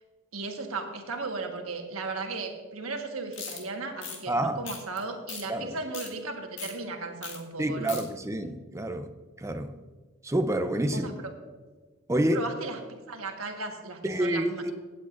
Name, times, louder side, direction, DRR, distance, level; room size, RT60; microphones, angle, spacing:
voice 1, 0.3-8.0 10.9-11.1 12.3-12.8 13.1-14.7, right 3 dB, 85° right, 4 dB, 1.4 m, -36 dB
sound 1, 3.3-3.6 4.0-4.2 4.7-5.0 5.3-5.4 5.8-6.1 6.6-6.7 7.2-7.4 7.6-8.0, left 6 dB, 60° left, 1.8 m, -38 dB
voice 2, 4.3-4.6 5.5-5.7 7.6-9.1 9.4-9.8 10.2-11.1 12.1-12.4 14.0-14.7, right 1 dB, 15° right, 7 dB, 0.6 m, -28 dB
16.5 x 8.5 x 2.5 m, 1.4 s
head